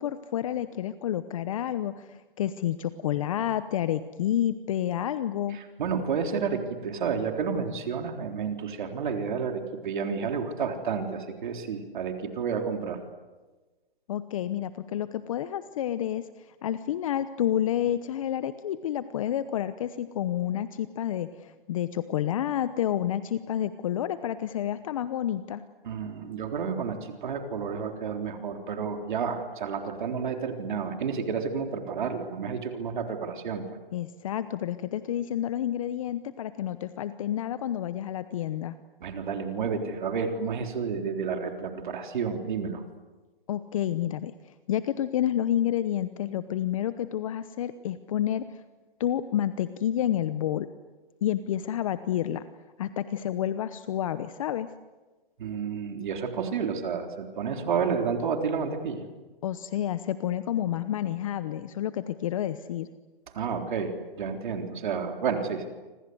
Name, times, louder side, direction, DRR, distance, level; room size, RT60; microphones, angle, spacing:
voice 1, 0.0-5.6 14.1-25.6 33.9-38.8 43.5-44.3 44.7-48.6 49.0-50.7 51.2-52.4 52.8-54.7 59.4-62.9, left 11 dB, 35° left, 13 dB, 0.9 m, -29 dB
voice 2, 5.8-13.0 25.8-33.6 39.0-42.8 55.4-59.0 63.3-65.6, right 6 dB, 55° right, 4 dB, 3.7 m, -30 dB
28.5 x 26.5 x 7.9 m, 1.2 s
hypercardioid pair, 160°, 29 cm